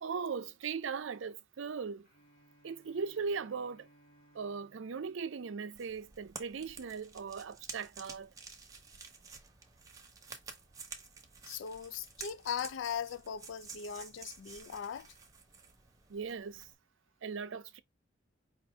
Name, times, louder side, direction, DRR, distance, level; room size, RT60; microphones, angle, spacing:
voice 1, 0.0-2.1 2.6-3.9 4.3-8.3 16.1-16.7 17.2-17.8, right 5 dB, 80° right, 0.5 m, -39 dB
Bowed string instrument, 2.0-6.1, right 1 dB, 50° left, 2.3 m, -66 dB
sound 1, 5.7-16.7, right 5 dB, 15° right, 0.8 m, -51 dB
voice 2, 11.5-15.1, left 8 dB, 70° left, 0.3 m, -39 dB
4.9 x 2.7 x 3.3 m
head